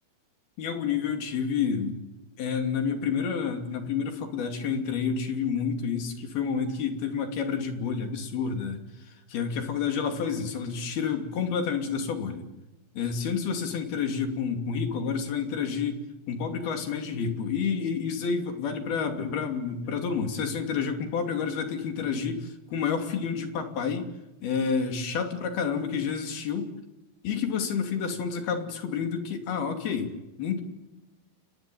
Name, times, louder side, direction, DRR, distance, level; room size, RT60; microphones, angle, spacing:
voice 1, 0.6-2.0 2.4-8.8 9.3-12.5 13.0-16.0 16.3-24.1 24.4-26.7 27.2-30.6, left 6 dB, 55° left, 6 dB, 4.4 m, -29 dB
30.0 x 21.0 x 9.2 m, 1.0 s
omnidirectional pair, 5.6 m